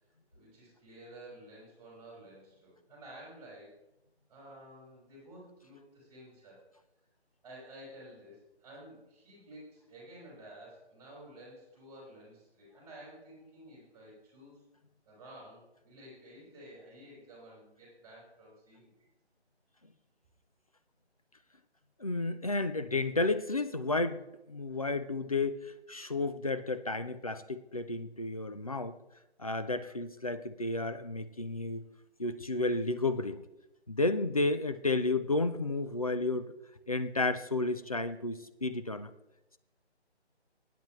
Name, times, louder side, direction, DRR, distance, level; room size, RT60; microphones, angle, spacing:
voice 1, 0.3-3.7 4.3-6.6 7.4-14.6 15.1-18.9, right 1 dB, 10° right, -6 dB, 5.0 m, -52 dB
voice 2, 22.0-29.0 29.4-31.8 32.2-33.4 33.9-36.5 36.9-39.1, left 2 dB, 35° left, 11 dB, 0.4 m, -32 dB
20.5 x 9.2 x 3.1 m, 0.93 s
figure-of-eight pair, 155°, 34 cm